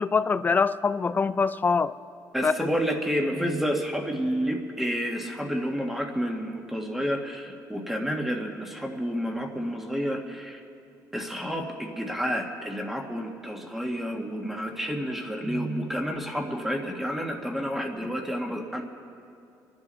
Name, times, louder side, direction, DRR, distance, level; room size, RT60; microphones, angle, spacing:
voice 1, 0.0-1.9 2.4-2.7, left 5 dB, 25° left, 0.5 m, -24 dB
voice 2, 2.3-10.6 11.1-18.8, equal, 5° right, 1.8 m, -30 dB
28.5 x 11.0 x 4.1 m
cardioid pair, 115°, 7 cm